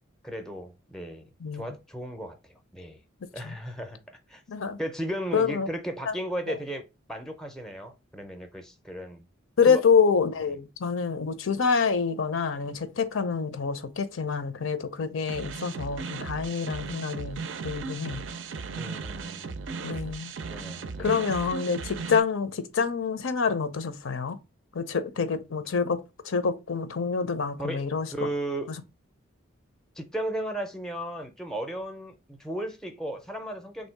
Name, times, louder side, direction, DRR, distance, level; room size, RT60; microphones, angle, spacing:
voice 1, 0.2-3.0 3.3-4.0 4.3-4.4 4.8-6.8 7.1-9.2 9.6-9.8 18.8-19.7 20.5-21.2 27.6-28.7 30.0-33.9, right 1 dB, 5° left, 0.5 m, -35 dB
voice 2, 1.4-1.7 3.4-3.5 4.5-4.8 5.3-5.7 6.1-6.2 6.5-6.6 9.6-18.2 19.8-20.3 21.0-24.4 24.7-28.1, left 5 dB, 80° left, 0.6 m, -27 dB
sound 1, 15.3-22.2, right 4 dB, 65° right, 0.4 m, -36 dB
3.3 x 2.7 x 4.4 m
head